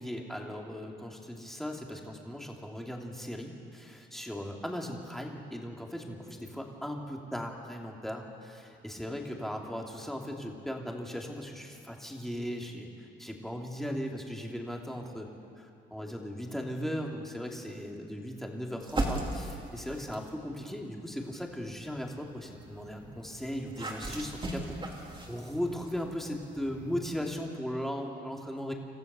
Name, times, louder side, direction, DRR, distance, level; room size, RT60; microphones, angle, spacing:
voice 1, 0.0-15.3 15.6-28.7, equal, ahead, 0 dB, 2.7 m, -38 dB
sound 1, 18.8-20.4 21.1-27.3, right 2 dB, 25° right, 3.4 m, -39 dB
27.5 x 14.0 x 6.9 m, 2.5 s
cardioid pair, 90°, 20 cm